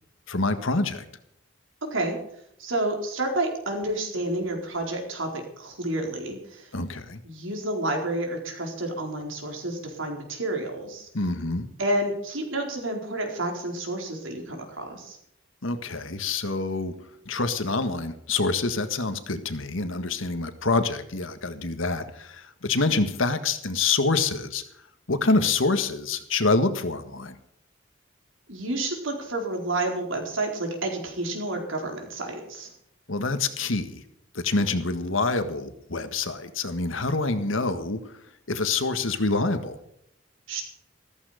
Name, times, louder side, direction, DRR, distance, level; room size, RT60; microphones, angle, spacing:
voice 1, 0.3-1.0 6.7-7.2 11.1-11.7 15.6-17.0 17.2-24.6 25.1-27.4 33.1-34.0 34.4-38.0 38.5-39.8, left 3 dB, 80° left, 9 dB, 1.7 m, -26 dB
voice 2, 1.8-2.2 2.6-6.7 7.2-11.1 11.8-15.2 28.5-32.7 40.5-40.6, right 1 dB, 80° right, 2 dB, 4.5 m, -30 dB
14.5 x 14.5 x 5.1 m, 0.75 s
head